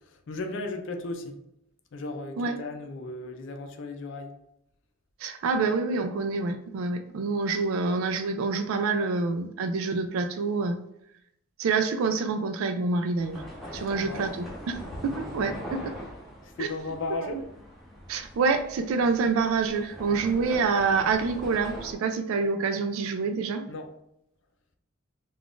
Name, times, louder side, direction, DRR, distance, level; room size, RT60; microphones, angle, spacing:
voice 1, 0.1-1.4 1.9-4.3 13.8-14.3 16.4-17.4 23.7-23.9, left 2 dB, 60° left, 5 dB, 0.4 m, -35 dB
voice 2, 5.2-10.8 11.6-13.4 13.7-14.8 15.0-16.0 16.6-16.7 17.2-17.4 18.1-23.7, right 4 dB, 85° right, 6 dB, 0.3 m, -27 dB
sound 1, 13.1-21.9, equal, ahead, 0.6 m, -42 dB
2.4 x 2.3 x 3.5 m, 0.79 s
head